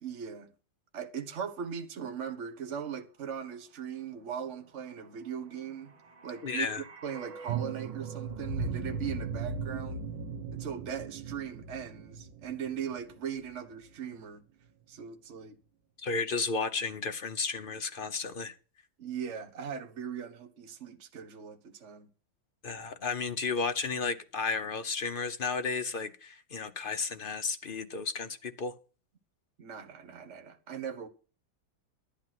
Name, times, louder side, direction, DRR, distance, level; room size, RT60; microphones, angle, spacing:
voice 1, 0.0-0.5 0.9-5.9 6.2-6.7 7.0-10.0 10.5-14.4 14.9-15.6 19.0-22.1 29.6-31.1, right 7 dB, 45° right, 1.5 m, -39 dB
sound 1, 5.8-13.9 14.2-14.3, right 5 dB, 80° right, 1.8 m, -38 dB
voice 2, 6.4-6.8 16.0-18.5 22.6-28.7, left 4 dB, 50° left, 0.6 m, -33 dB
12.0 x 9.5 x 5.9 m
omnidirectional pair, 2.0 m